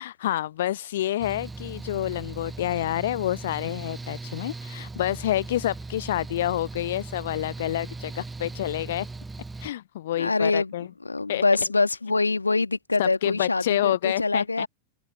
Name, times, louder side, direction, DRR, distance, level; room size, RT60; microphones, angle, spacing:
voice 1, 0.0-9.1 9.6-10.9 11.3-11.4 12.1-12.2 13.0-14.7, left 13 dB, 60° left, 0.4 m, -28 dB
Mechanical fan, 1.2-9.7, right 3 dB, 10° right, 0.8 m, -38 dB
voice 2, 10.2-10.7 11.1-14.7, left 3 dB, 80° left, 1.8 m, -24 dB
figure-of-eight pair, 90°, 0 cm